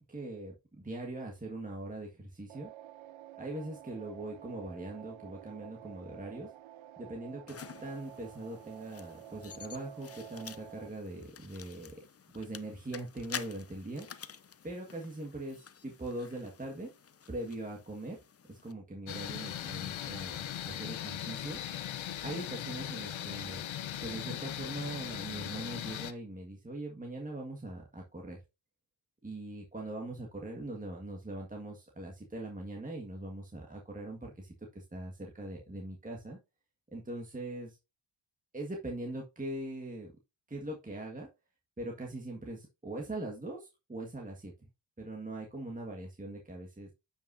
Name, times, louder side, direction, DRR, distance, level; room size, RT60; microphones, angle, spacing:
voice 1, 0.1-2.7 3.3-6.5 7.0-12.0 12.3-14.1 14.6-16.9 17.3-18.2 18.5-21.6 22.2-23.6 24.0-28.4 29.2-36.4 36.9-37.8 38.5-40.1 40.5-41.3 41.8-44.7 45.0-46.9, right 2 dB, 15° right, 0 dB, 1.6 m, -41 dB
sound 1, 2.5-10.9, right 12 dB, 80° right, 0.6 m, -50 dB
sound 2, 7.5-18.7, left 7 dB, 30° left, 0.6 m, -49 dB
sound 3, 19.1-26.1, left 11 dB, 75° left, 0.8 m, -39 dB
8.9 x 5.6 x 2.7 m, 0.26 s
cardioid pair, 70°, 47 cm